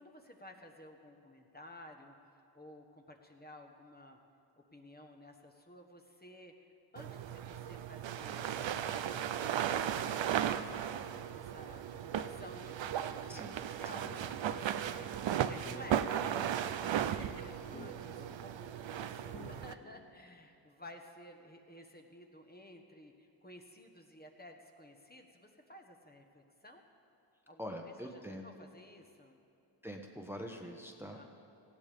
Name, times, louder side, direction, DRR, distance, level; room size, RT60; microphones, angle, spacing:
voice 1, 0.0-4.2 4.7-9.0 9.3-10.2 10.5-10.7 11.3-16.4 16.8-26.8 27.5-27.8 28.3-29.4 31.1-31.3, left 1 dB, 20° left, 2 dB, 1.2 m, -54 dB
sound 1, 7.0-19.7, right 9 dB, 85° right, 0.6 m, -36 dB
sound 2, 14.0-20.8, left 2 dB, 50° left, 3.1 m, -55 dB
voice 2, 27.6-28.4 29.8-31.2, equal, 5° right, 2 dB, 1.1 m, -44 dB
18.5 x 15.5 x 3.5 m, 2.7 s
wide cardioid pair, 75°, 44 cm